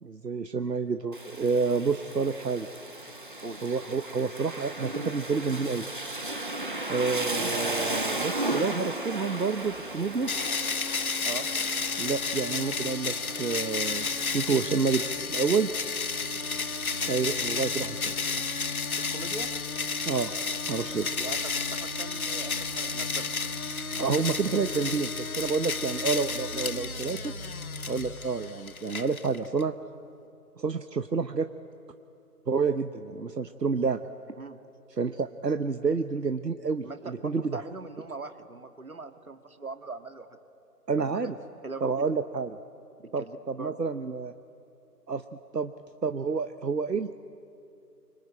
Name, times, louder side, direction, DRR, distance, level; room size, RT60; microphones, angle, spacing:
voice 1, 0.0-2.7 3.6-5.9 6.9-10.3 12.0-15.7 17.1-18.1 20.1-20.3 20.7-21.1 24.0-27.3 27.9-29.7 30.6-31.5 32.5-34.0 34.9-37.6 40.9-41.3 41.8-42.6 43.1-44.3 45.1-45.2 45.5-45.7 46.0-47.1, right 4 dB, 80° right, 9 dB, 1.0 m, -29 dB
Rain, 1.1-14.6, right 2 dB, 30° right, 1.2 m, -35 dB
sound 1, 9.6-28.0, left 1 dB, 20° left, 3.7 m, -44 dB
sound 2, 10.3-29.6, left 4 dB, 60° left, 0.9 m, -32 dB
voice 2, 19.1-19.5 21.2-21.4 21.7-23.3 34.4-34.6 36.8-40.4 41.0-41.3 41.6-41.9 43.2-43.7, right 3 dB, 60° right, 8 dB, 1.9 m, -40 dB
25.5 x 24.0 x 8.9 m, 2.7 s
figure-of-eight pair, 160°, 49 cm